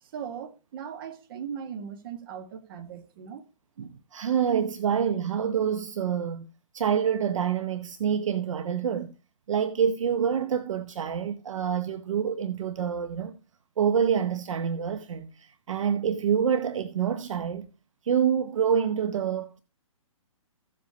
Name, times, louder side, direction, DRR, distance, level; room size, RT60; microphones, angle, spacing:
voice 1, 0.0-3.4, right 7 dB, 40° right, 1.6 m, -39 dB
voice 2, 3.8-6.5 6.7-9.1 9.5-13.3 13.8-17.7 18.0-19.6, right 8 dB, 65° right, 0.8 m, -27 dB
15.0 x 7.5 x 2.9 m
hypercardioid pair, 155°, 18 cm